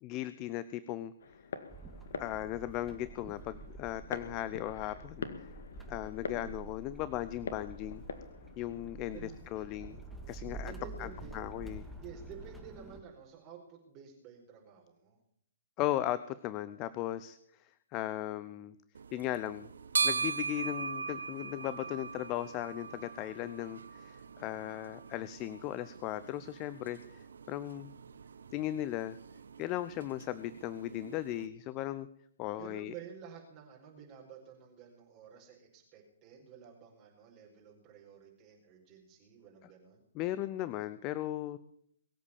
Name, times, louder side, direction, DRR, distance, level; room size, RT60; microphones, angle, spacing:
voice 1, 0.0-1.1 2.2-5.5 5.9-8.0 8.6-10.0 10.3-10.7 11.0-11.8 15.8-18.8 19.1-19.7 20.0-27.9 28.5-29.2 29.6-32.1 32.4-32.9 40.1-41.6, left 14 dB, 30° left, 16 dB, 0.7 m, -37 dB
sound 1, 1.2-12.5, left 5 dB, 65° left, 1.8 m, -47 dB
sound 2, 1.7-13.0, right 2 dB, 5° right, 1.9 m, -48 dB
voice 2, 9.1-10.0 10.6-11.4 12.0-15.2 32.5-40.0, right 7 dB, 30° right, -2 dB, 4.7 m, -51 dB
sound 3, 18.9-31.5, right 5 dB, 75° right, 0.9 m, -40 dB
22.5 x 8.3 x 7.1 m, 0.69 s
figure-of-eight pair, 125°, 0 cm